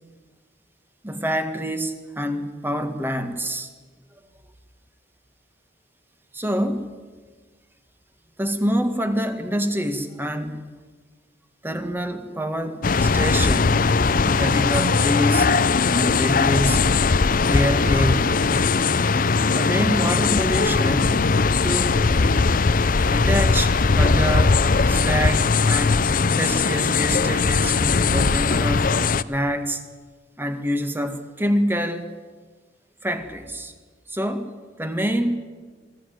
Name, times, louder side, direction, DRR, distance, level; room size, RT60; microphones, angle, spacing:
voice 1, 1.0-3.7 6.3-6.9 8.4-10.6 11.6-13.8 14.2-15.5 15.9-17.0 17.5-18.4 19.6-21.2 21.6-22.0 23.1-24.6 24.9-28.9 29.3-29.8 30.4-32.0 33.0-33.7 34.1-34.5 34.8-35.3, equal, 10° right, 8 dB, 1.8 m, -26 dB
sound 1, 12.8-29.2, left 4 dB, 50° left, 0.6 m, -19 dB
24.5 x 16.5 x 9.4 m, 1.4 s
head